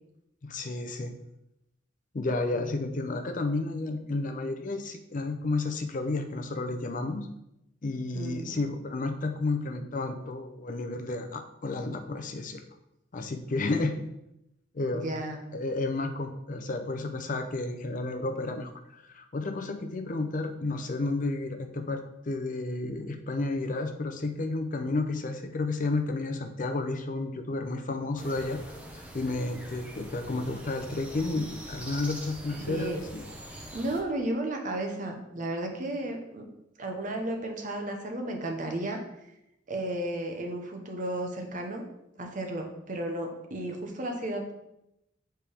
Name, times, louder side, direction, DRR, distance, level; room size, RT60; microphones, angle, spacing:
voice 1, 0.4-1.2 2.1-7.3 7.8-12.6 13.1-14.0 14.7-15.1 15.5-28.6 28.9-33.2, left 2 dB, 45° left, 6 dB, 0.6 m, -32 dB
voice 2, 8.1-8.6 14.9-15.4 32.6-33.0 33.7-36.5 36.8-39.0 39.7-41.8 42.2-44.5, right 1 dB, 45° right, 3 dB, 0.9 m, -33 dB
sound 1, 28.2-34.0, right 1 dB, 5° right, 0.8 m, -44 dB
6.9 x 4.5 x 3.4 m, 0.85 s
head